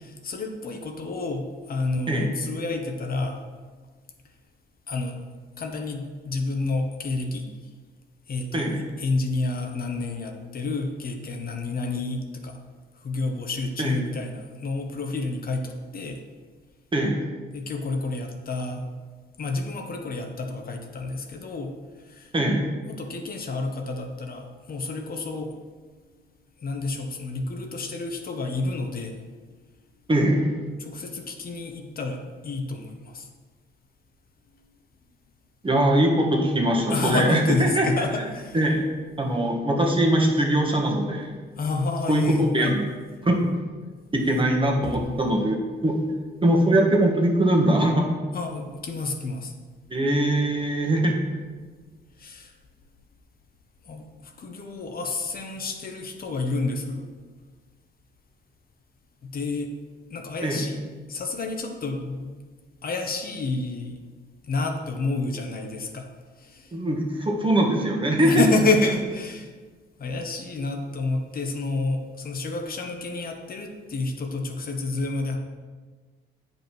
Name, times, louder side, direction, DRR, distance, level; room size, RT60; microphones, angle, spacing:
voice 1, 0.0-3.4 4.9-5.1 5.6-7.5 8.3-12.6 13.0-16.2 17.5-18.8 19.4-21.7 22.0-22.3 22.9-25.5 26.6-29.2 30.8-33.3 36.9-38.6 41.6-42.8 48.3-49.5 52.2-52.5 53.9-57.1 59.2-59.7 60.1-60.8 61.1-62.3 62.8-64.0 64.4-66.1 66.4-66.7 68.2-69.5 70.0-75.4, left 3 dB, 50° left, 4 dB, 1.1 m, -29 dB
voice 2, 8.5-8.8 13.8-13.9 16.9-17.2 22.3-22.6 30.1-30.5 35.6-37.8 38.5-38.9 39.2-41.3 42.1-42.8 43.2-43.5 44.1-45.5 45.8-46.0 46.4-48.1 49.9-51.2 60.4-60.6 66.7-68.3, right 1 dB, 25° right, 0 dB, 1.7 m, -22 dB
8.8 x 5.5 x 4.5 m, 1.4 s
cardioid pair, 90°, 20 cm